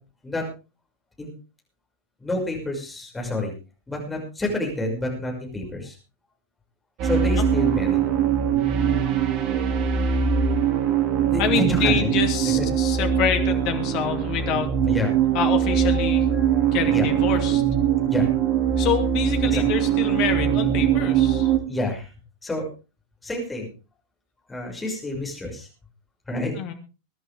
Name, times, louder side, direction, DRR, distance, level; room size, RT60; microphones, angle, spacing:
voice 1, 2.2-3.5 3.9-6.0 7.0-8.1 11.3-12.1 12.4-12.6 14.8-15.1 16.3-16.5 16.9-17.1 18.1-18.3 19.5-19.6 21.7-22.1 22.4-22.7 23.2-23.7 24.5-25.7 26.3-26.5, left 1 dB, 10° left, 0 dB, 6.0 m, -28 dB
sound 1, 7.0-21.6, right 8 dB, 40° right, 2.1 m, -22 dB
voice 2, 11.4-14.8 15.3-16.3 16.7-17.6 18.8-21.5 26.6-26.7, left 9 dB, 45° left, 6 dB, 2.6 m, -27 dB
23.0 x 11.0 x 3.5 m, 0.32 s
figure-of-eight pair, 90°, 0 cm